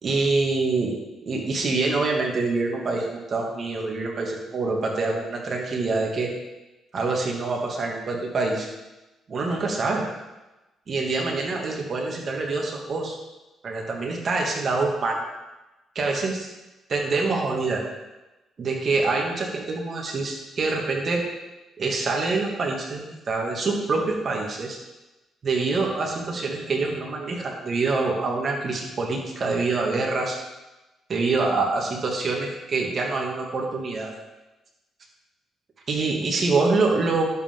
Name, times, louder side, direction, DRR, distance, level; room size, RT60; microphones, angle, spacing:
voice 1, 0.0-0.9 1.3-6.3 6.9-8.7 9.3-10.0 10.9-13.2 13.6-15.3 15.9-16.5 16.9-17.9 18.6-21.2 21.8-24.8 25.4-30.4 31.1-34.1 35.9-37.2, right 3 dB, 45° right, -1 dB, 2.6 m, -25 dB
11.5 x 8.7 x 3.9 m, 1.1 s
cardioid pair, 90°, 0 cm